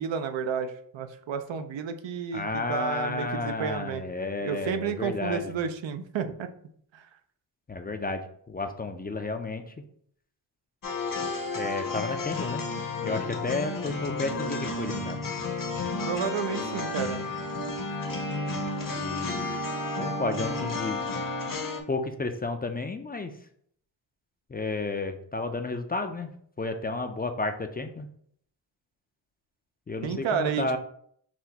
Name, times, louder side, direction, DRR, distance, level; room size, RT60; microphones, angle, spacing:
voice 1, 0.0-4.0 4.4-6.5 6.9-7.1 16.0-17.2 30.0-30.8, right 7 dB, 90° right, 8 dB, 0.5 m, -31 dB
voice 2, 2.3-5.5 7.7-8.2 8.5-9.7 11.5-12.6 13.0-15.2 18.9-19.5 19.9-21.1 21.9-23.3 24.5-26.3 26.6-28.1 29.9-30.8, left 3 dB, 25° left, 7 dB, 0.3 m, -32 dB
sound 1, 10.8-21.8, left 3 dB, 50° left, 0.8 m, -32 dB
5.9 x 2.2 x 2.7 m, 0.63 s
cardioid pair, 65°, 44 cm